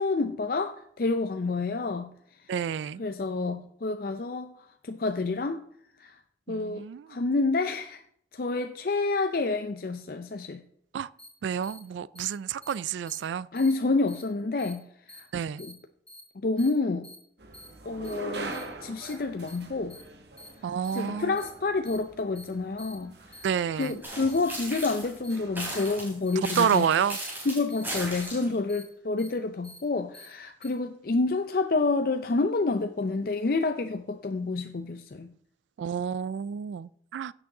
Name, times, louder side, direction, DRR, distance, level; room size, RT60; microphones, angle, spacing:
voice 1, 0.0-2.1 3.0-4.5 4.8-5.6 6.0-6.2 6.5-8.0 8.3-10.6 13.5-14.8 15.1-15.3 15.6-15.7 16.4-17.1 17.9-20.0 20.9-23.5 23.8-26.9 27.5-35.3, left 3 dB, 50° left, 0.5 m, -28 dB
voice 2, 2.5-3.0 6.5-7.2 10.9-11.1 11.4-13.5 15.3-15.6 20.6-21.4 23.4-24.0 26.6-27.2 35.8-37.3, right 7 dB, 85° right, 0.3 m, -29 dB
sound 1, 11.2-11.3 11.6-11.8 12.1-12.3 12.6-12.7 13.1-13.2 13.5-13.7 14.1-14.2 14.6-14.7 15.1-15.2 15.6-15.7 16.1-16.2 16.6-16.7 17.0-17.1 17.5-17.7 18.0-18.1 18.5-18.6 19.0-19.1 19.5-19.6 19.9-20.0 20.4-20.5 20.8-21.0 21.4-21.5 21.8-22.0 22.3-22.4 22.8-22.9 23.3-23.5 23.8-23.9 24.3-24.4 24.7-24.9 25.2-25.3 25.7-25.9 26.3-26.4 26.7-26.8 27.1-27.3 27.7-27.8 28.2-28.3 28.7-28.8 29.2-29.3 29.6-29.8 30.1-30.2 30.6-30.7, left 1 dB, 5° left, 4.0 m, -48 dB
sound 2, 17.4-25.7, right 2 dB, 70° right, 1.5 m, -43 dB
sound 3, 24.0-25.2 25.6-28.6, right 1 dB, 10° right, 4.0 m, -36 dB
16.0 x 6.1 x 3.8 m
head